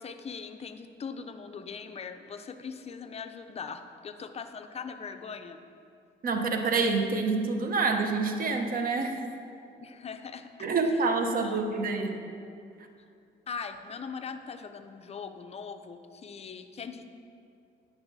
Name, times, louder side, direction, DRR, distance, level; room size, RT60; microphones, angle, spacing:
voice 1, 0.0-5.6 9.8-10.5 10.8-11.0 11.4-11.6 13.5-17.1, left 5 dB, 30° left, 8 dB, 0.4 m, -41 dB
voice 2, 6.2-9.2 10.6-12.2, right 4 dB, 45° right, 5 dB, 0.7 m, -27 dB
8.8 x 6.0 x 2.7 m, 2.5 s
cardioid pair, 90°, 20 cm